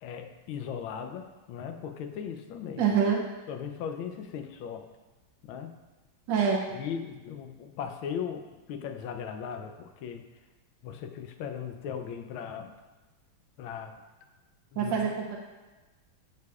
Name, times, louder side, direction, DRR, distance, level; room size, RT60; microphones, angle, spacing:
voice 1, 0.0-2.9 3.5-4.8 5.5-5.7 6.7-10.2 10.8-12.7 13.6-13.9 14.7-14.9, left 7 dB, 80° left, 6 dB, 1.4 m, -38 dB
voice 2, 2.8-3.2 6.3-6.6 14.8-15.4, right 6 dB, 70° right, 0 dB, 1.3 m, -25 dB
14.0 x 4.8 x 2.4 m, 1.2 s
omnidirectional pair, 2.3 m